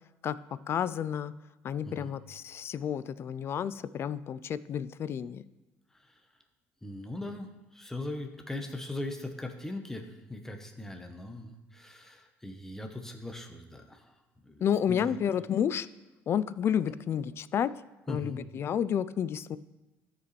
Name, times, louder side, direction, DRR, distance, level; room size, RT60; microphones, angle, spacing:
voice 1, 0.7-1.3 1.6-5.4 14.6-15.9 16.3-17.7 18.1-19.6, left 9 dB, 45° left, 16 dB, 0.3 m, -30 dB
voice 2, 6.8-15.2 18.1-18.4, left 2 dB, 5° left, 4 dB, 1.0 m, -40 dB
13.5 x 4.9 x 3.2 m, 1.1 s
supercardioid pair, 100°, 6 cm